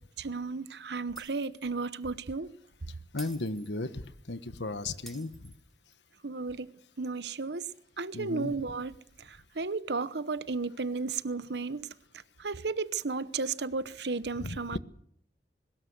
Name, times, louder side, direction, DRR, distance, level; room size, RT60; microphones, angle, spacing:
voice 1, 0.2-2.5 6.2-6.7 7.0-7.7 8.0-8.9 9.2-11.9 12.4-14.8, right 4 dB, 70° right, 1.0 m, -34 dB
Shatter, 1.2-1.7 2.0-2.2 3.2-4.2 5.1-6.1, right 1 dB, ahead, 6.5 m, -51 dB
voice 2, 3.1-5.3 8.1-8.5 14.4-14.8, left 2 dB, 85° left, 1.4 m, -35 dB
21.5 x 19.5 x 8.0 m
head